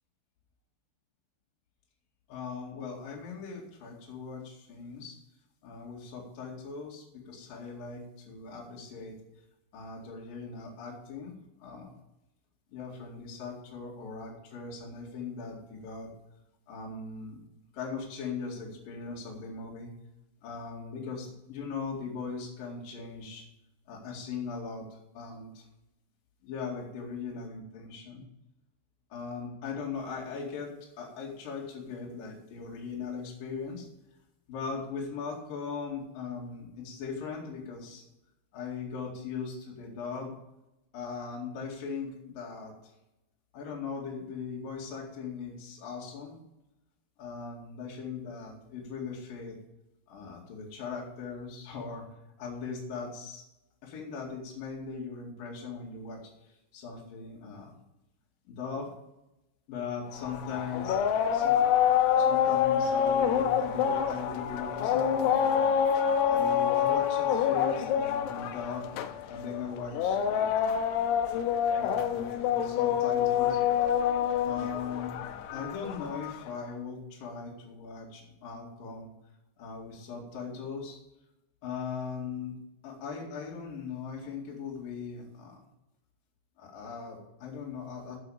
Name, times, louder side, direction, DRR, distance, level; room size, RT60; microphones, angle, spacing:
voice 1, 2.3-5.2 5.6-9.2 9.7-11.3 11.6-11.9 12.7-16.1 16.7-17.4 17.7-19.9 20.4-23.4 23.9-24.9 25.1-25.6 26.4-28.2 29.1-33.9 34.5-38.0 38.5-40.3 40.9-42.7 43.5-46.4 47.2-49.6 50.1-52.0 52.4-53.4 53.8-56.2 56.5-57.7 58.5-58.9 59.7-61.0 61.3-61.6 62.2-65.6 66.3-68.9 69.3-70.8 71.8-72.2 72.5-73.6 74.4-75.2 75.5-79.1 79.6-81.0 81.6-82.6 82.8-85.6 86.6-88.2, left 5 dB, 55° left, -3 dB, 3.6 m, -39 dB
sound 1, 60.1-76.5, left 8 dB, 80° left, 2.6 m, -27 dB
16.0 x 5.9 x 5.0 m, 0.92 s
omnidirectional pair, 5.3 m